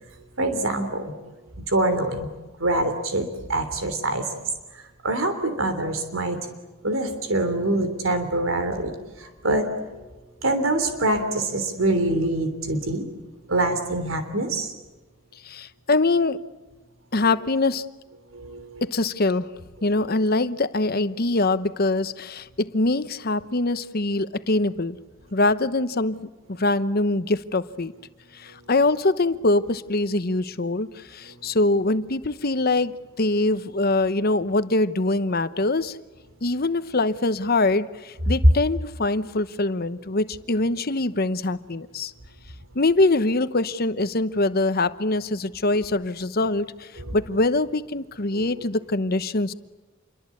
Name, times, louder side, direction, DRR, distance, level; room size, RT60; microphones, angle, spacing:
voice 1, 0.4-1.1 1.7-2.3 2.6-4.2 5.0-6.5 6.8-10.0 10.4-13.0 13.5-14.7 18.3-18.8 19.8-19.9 47.0-47.2 48.3-48.5, right 2 dB, 85° right, 3.3 m, -25 dB
voice 2, 15.4-16.4 17.1-17.9 18.8-19.5 19.8-25.0 25.3-27.9 28.3-36.0 36.4-42.1 42.7-49.5, left 2 dB, 50° left, 1.0 m, -23 dB
28.0 x 23.5 x 8.6 m
head